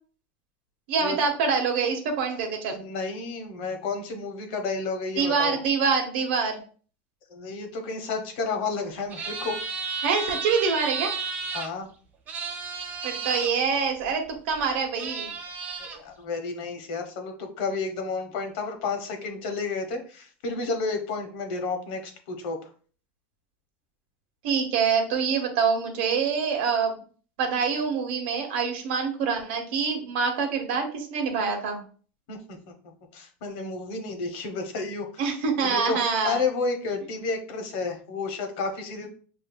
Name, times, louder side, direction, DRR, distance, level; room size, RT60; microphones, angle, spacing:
voice 1, 0.9-2.8 5.2-6.6 10.0-11.1 13.0-15.3 24.4-27.0 27.4-31.8 35.2-36.4, right 5 dB, 70° right, 3 dB, 1.2 m, -25 dB
voice 2, 2.8-5.6 7.3-9.6 11.5-11.9 15.8-22.7 32.3-32.6 33.1-35.1 35.6-36.0 36.2-39.1, left 4 dB, 65° left, 5 dB, 1.0 m, -31 dB
sound 1, 9.1-11.7 12.3-13.5 14.5-14.6 14.9-16.0, right 5 dB, 35° right, 0.8 m, -33 dB
6.7 x 2.6 x 2.2 m, 0.42 s
supercardioid pair, 155°, 6 cm